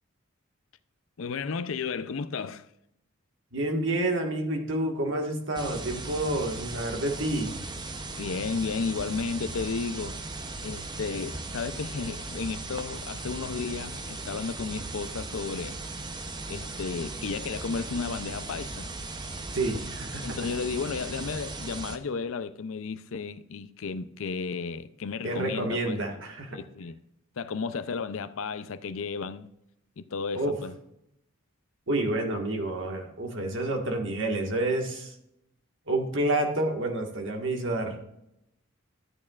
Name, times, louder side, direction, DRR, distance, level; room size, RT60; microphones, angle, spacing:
voice 1, 1.2-2.6 8.2-10.2 10.6-15.7 16.5-18.9 20.2-26.0 26.5-27.0 27.4-29.5 30.0-30.7, left 5 dB, 65° left, 0.5 m, -33 dB
voice 2, 3.5-7.5 19.5-20.4 25.2-26.6 30.3-30.5 31.9-35.1 35.9-38.1, right 2 dB, 60° right, 1.6 m, -29 dB
sound 1, 5.5-22.0, right 2 dB, 20° right, 0.6 m, -38 dB
12.5 x 8.5 x 2.4 m
head